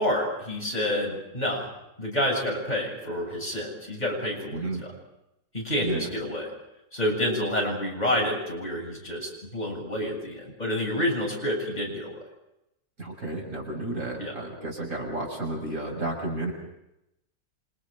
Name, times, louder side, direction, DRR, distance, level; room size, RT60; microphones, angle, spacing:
voice 1, 0.0-1.7 2.0-4.9 5.5-6.5 6.9-12.2 14.2-14.3, left 1 dB, 20° left, -2 dB, 7.5 m, -28 dB
voice 2, 4.5-4.8 5.8-6.1 13.0-16.5, right 2 dB, 45° right, -1 dB, 6.6 m, -32 dB
29.0 x 26.0 x 5.2 m, 0.85 s
omnidirectional pair, 1.9 m